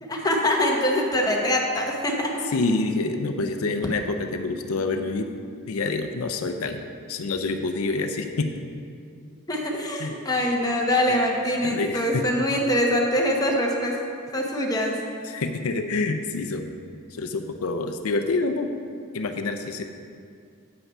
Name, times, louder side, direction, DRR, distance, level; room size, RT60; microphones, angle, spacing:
voice 1, 0.0-2.4 9.5-13.9 14.3-14.9, left 1 dB, 15° left, -1 dB, 1.0 m, -24 dB
voice 2, 2.5-5.3 5.7-6.8 7.1-8.5 9.9-10.1 11.1-11.2 11.6-12.2 15.2-16.7 17.1-18.7 19.1-19.8, left 3 dB, 85° left, 6 dB, 0.5 m, -27 dB
8.5 x 5.8 x 5.5 m, 2.3 s
head